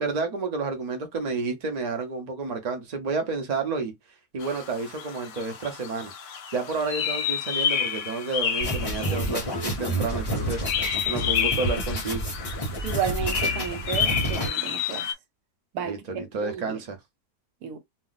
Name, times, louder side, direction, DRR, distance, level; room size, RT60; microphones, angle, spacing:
voice 1, 0.0-3.9 4.3-6.1 6.5-12.2 15.8-17.0, right 4 dB, 45° right, 0.5 m, -30 dB
sound 1, 4.4-15.1, left 8 dB, 70° left, 0.9 m, -30 dB
sound 2, 8.6-14.5, right 1 dB, 20° left, 0.8 m, -29 dB
voice 2, 12.8-15.1 15.7-16.8 17.6-17.8, right 8 dB, 80° right, 1.2 m, -32 dB
2.6 x 2.0 x 3.9 m
omnidirectional pair, 1.6 m